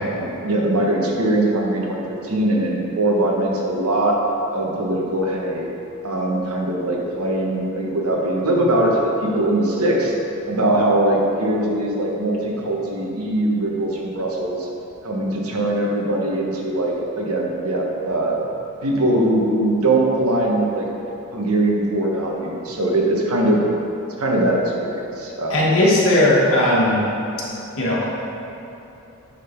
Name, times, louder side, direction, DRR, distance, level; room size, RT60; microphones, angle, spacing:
voice 1, 0.1-4.2 4.5-5.7 6.0-10.1 10.5-14.7 15.0-18.5 18.8-20.9 21.3-23.6 24.2-25.6, right 1 dB, 75° right, -1 dB, 1.1 m, -21 dB
voice 2, 25.5-27.0 27.8-28.0, left 1 dB, 65° left, -5 dB, 1.4 m, -17 dB
9.0 x 3.8 x 4.5 m, 2.9 s
head